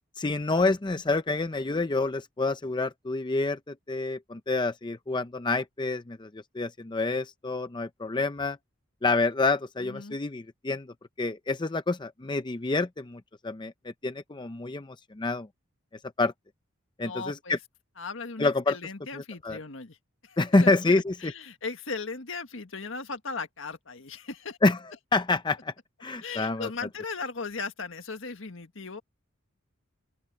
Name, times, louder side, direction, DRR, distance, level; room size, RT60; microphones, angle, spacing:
voice 1, 0.2-8.6 9.0-15.5 16.2-16.3 17.0-17.6 18.4-18.8 19.1-19.6 20.4-21.3 24.6-24.8 25.1-25.7 26.0-26.7, left 3 dB, 25° left, 0.6 m, -27 dB
voice 2, 9.8-10.2 17.0-17.6 18.0-20.0 20.2-24.6 26.2-29.0, left 4 dB, 70° left, 1.7 m, -37 dB
open air
head